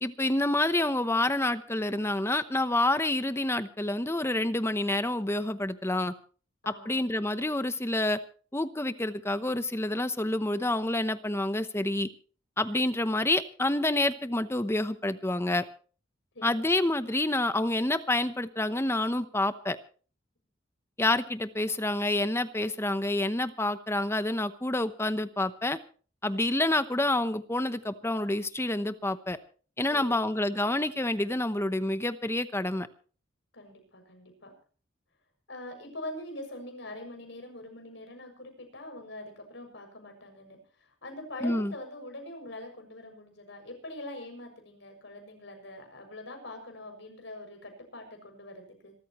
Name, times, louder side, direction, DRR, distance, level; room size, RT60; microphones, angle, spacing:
voice 1, 0.0-6.1 6.7-8.2 8.5-12.1 12.6-15.6 16.4-19.8 21.0-25.8 26.2-29.4 29.8-32.9 41.4-41.7, left 1 dB, 15° left, 11 dB, 0.9 m, -28 dB
voice 2, 6.6-7.0 16.3-16.5 29.9-30.3 33.5-34.5 35.5-48.9, left 1 dB, 70° left, 4 dB, 6.8 m, -43 dB
26.5 x 14.0 x 3.1 m, 0.40 s
head